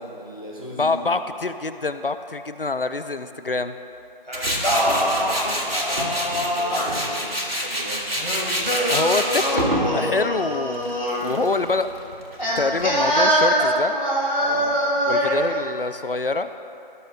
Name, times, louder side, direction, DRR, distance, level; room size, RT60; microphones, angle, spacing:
voice 1, 0.0-1.2 4.6-8.1 14.4-14.8, right 1 dB, 35° left, -3 dB, 1.5 m, -36 dB
voice 2, 0.8-3.7 8.9-11.9 12.6-13.9 15.1-16.5, left 3 dB, 70° left, 10 dB, 0.5 m, -25 dB
Singing, 4.3-7.1 8.2-11.4 12.4-15.5, equal, 50° left, 2.2 m, -23 dB
Tools, 4.3-13.2, equal, 80° right, 1.6 m, -28 dB
16.5 x 6.8 x 2.5 m, 2.7 s
figure-of-eight pair, 180°, 29 cm